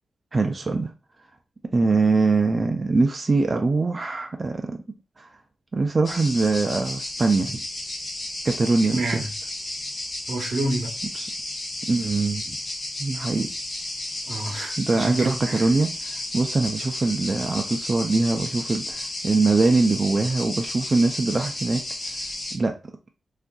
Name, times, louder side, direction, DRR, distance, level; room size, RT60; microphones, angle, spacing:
voice 1, 0.3-0.9 1.7-4.8 5.2-5.3 5.7-7.6 8.4-9.2 11.1-11.3 11.9-12.6 13.0-13.5 14.8-21.8 22.5-22.7, right 3 dB, 30° right, 0.4 m, -23 dB
sound 1, 6.0-22.5, left 1 dB, 40° left, 0.8 m, -33 dB
voice 2, 8.9-9.3 10.3-11.0 14.2-15.7, right 2 dB, 80° right, 0.7 m, -29 dB
3.6 x 2.4 x 2.2 m
wide cardioid pair, 125°, 0 cm